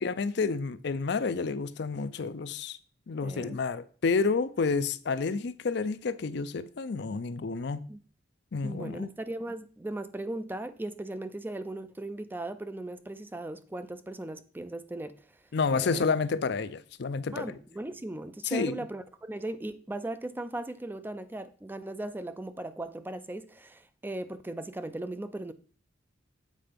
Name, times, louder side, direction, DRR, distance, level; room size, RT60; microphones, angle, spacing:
voice 1, 0.0-2.8 3.1-7.8 8.5-9.1 15.5-17.6 18.4-18.8, left 4 dB, 60° left, 0.5 m, -30 dB
voice 2, 3.2-3.6 7.9-8.0 8.6-15.1 15.7-16.0 17.3-25.5, right 1 dB, 10° right, 0.4 m, -38 dB
7.6 x 4.4 x 5.1 m
head